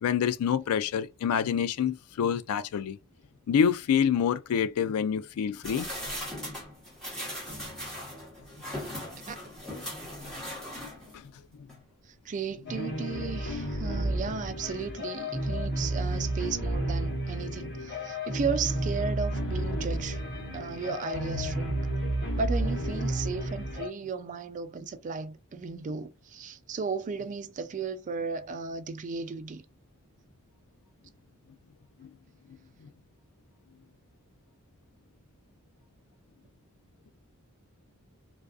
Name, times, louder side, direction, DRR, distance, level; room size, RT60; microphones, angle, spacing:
voice 1, 0.0-3.0 3.5-5.9 10.2-10.3 11.1-11.2 32.0-32.1, left 8 dB, 75° left, 0.3 m, -27 dB
sound 1, 5.6-11.3 11.7-11.8, equal, 5° left, 1.0 m, -39 dB
voice 2, 12.1-20.2 20.5-21.9 22.4-29.6, right 5 dB, 35° right, 0.3 m, -35 dB
sound 2, 12.7-23.9, right 1 dB, 50° left, 1.3 m, -31 dB
2.3 x 2.3 x 2.3 m
head